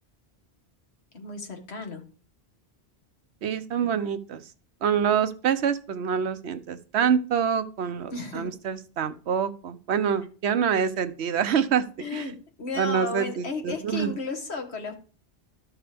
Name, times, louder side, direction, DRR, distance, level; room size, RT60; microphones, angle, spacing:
voice 1, 1.1-2.0 3.8-3.9 8.1-8.5 12.0-15.0, left 3 dB, 80° left, 4 dB, 1.8 m, -34 dB
voice 2, 3.4-4.5 4.8-12.2 12.8-14.1, right 7 dB, 85° right, 12 dB, 1.0 m, -26 dB
13.0 x 6.1 x 3.4 m, 0.39 s
omnidirectional pair, 1.1 m